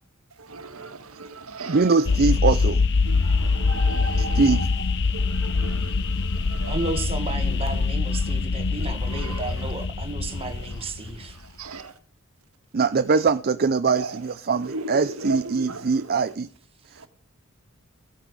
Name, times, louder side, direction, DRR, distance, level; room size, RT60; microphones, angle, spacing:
voice 1, 0.4-2.0 3.0-6.9 7.5-7.8 8.2-8.4 8.8-9.7 10.4-11.9 14.0-14.2 14.6-16.3 16.9-17.1, right 3 dB, 90° right, 1.7 m, -37 dB
voice 2, 1.7-2.8 4.4-4.6 12.7-16.5, right 4 dB, 45° right, 0.5 m, -22 dB
sound 1, 2.0-11.3, left 4 dB, 55° left, 0.7 m, -24 dB
voice 3, 6.7-11.4, right 3 dB, 25° right, 1.5 m, -33 dB
16.0 x 8.8 x 4.8 m
head